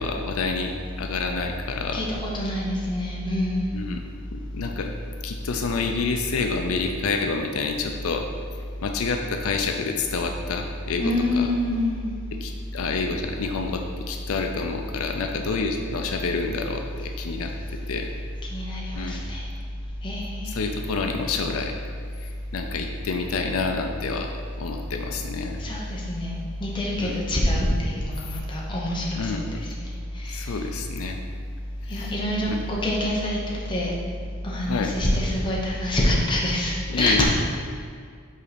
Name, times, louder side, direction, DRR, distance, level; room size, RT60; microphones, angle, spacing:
voice 1, 0.0-2.0 3.7-4.0 4.3-4.9 5.2-8.3 8.8-11.5 12.4-17.5 17.9-18.1 18.9-19.2 20.4-21.7 22.2-24.3 24.6-25.6 27.0-27.2 29.2-29.5 30.3-31.2 31.9-32.1 32.5-32.6 34.7-34.9 36.9-37.2, left 4 dB, 80° left, 4 dB, 0.4 m, -28 dB
voice 2, 1.9-3.8 11.0-12.1 18.5-19.4 20.0-20.7 25.6-29.5 30.2-30.4 31.9-33.9 34.4-37.2, left 1 dB, 20° left, -4 dB, 0.9 m, -26 dB
5.4 x 4.0 x 5.0 m, 2.1 s
head